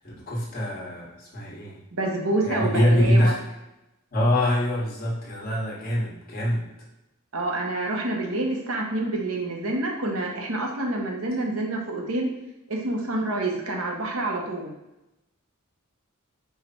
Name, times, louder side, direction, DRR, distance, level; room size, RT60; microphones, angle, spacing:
voice 1, 0.0-1.7 2.4-3.4 4.1-6.7, equal, 45° left, -5 dB, 1.2 m, -24 dB
voice 2, 1.9-3.3 7.3-12.3 12.7-14.7, right 2 dB, 80° right, 0 dB, 0.9 m, -27 dB
4.7 x 2.2 x 4.2 m, 0.93 s
head